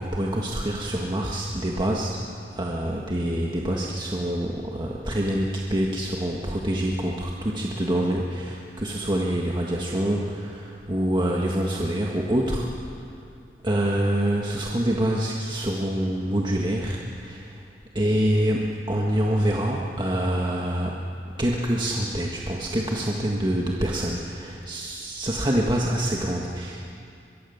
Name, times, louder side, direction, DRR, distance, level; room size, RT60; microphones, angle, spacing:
voice 1, 0.0-2.2 2.6-12.7 13.6-17.5 17.9-20.9 21.4-26.9, right 1 dB, 25° right, -2 dB, 1.6 m, -26 dB
23.5 x 23.0 x 7.1 m, 2.4 s
head